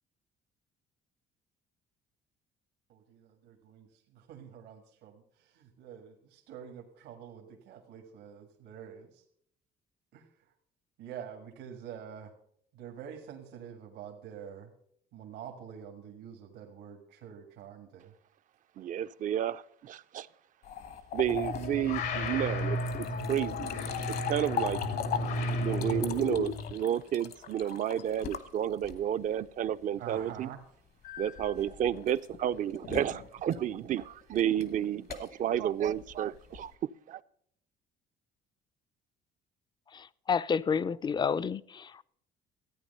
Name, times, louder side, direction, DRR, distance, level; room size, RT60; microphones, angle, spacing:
voice 1, 2.9-9.2 10.1-10.3 11.0-12.3 12.7-14.7 15.1-18.1 30.0-30.6, right 8 dB, 85° right, 1.7 m, -47 dB
voice 2, 18.8-20.3 21.1-23.7 24.1-24.8 25.6-30.5 31.2-36.7 37.1-37.2, right 10 dB, 50° right, 0.5 m, -31 dB
bebendo agua, 20.6-29.3 31.0-36.8, left 8 dB, 65° left, 1.3 m, -40 dB
sound 1, 21.2-26.7, left 2 dB, 85° left, 2.1 m, -33 dB
voice 3, 39.9-42.1, left 6 dB, 25° left, 0.4 m, -30 dB
14.5 x 9.1 x 5.4 m
cardioid pair, 110°, 17 cm